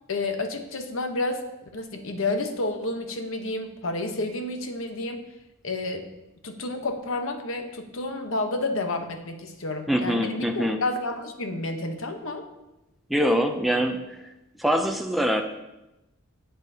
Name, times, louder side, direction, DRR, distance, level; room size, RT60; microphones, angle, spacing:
voice 1, 0.1-1.4 1.7-5.2 5.6-6.1 6.4-12.5, left 2 dB, 75° left, 5 dB, 1.0 m, -30 dB
voice 2, 9.9-10.8 13.1-14.0 14.6-15.4, equal, ahead, 3 dB, 0.4 m, -23 dB
10.5 x 8.0 x 2.8 m, 0.97 s
head